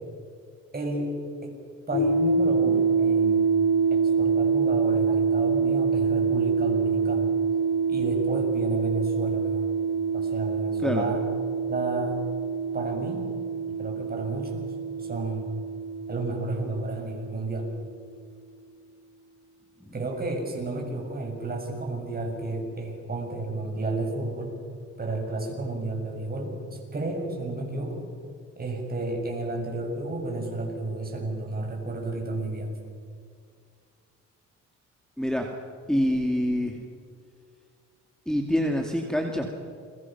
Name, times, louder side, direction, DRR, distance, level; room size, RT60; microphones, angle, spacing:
voice 1, 0.7-1.1 1.4-1.5 1.9-3.5 3.9-7.3 7.9-9.7 10.1-11.2 11.7-12.2 12.7-13.3 13.7-14.7 15.0-15.6 16.1-17.7 19.9-24.6 25.0-28.1 28.6-32.8, right 2 dB, 30° right, 1 dB, 7.0 m, -32 dB
sound 1, 1.9-17.4, right 5 dB, 80° left, 6.4 m, -26 dB
voice 2, 35.2-35.5 35.9-36.8 38.3-39.5, equal, ahead, 1 dB, 2.5 m, -26 dB
29.5 x 23.0 x 6.1 m, 2.2 s
cardioid pair, 90°, 30 cm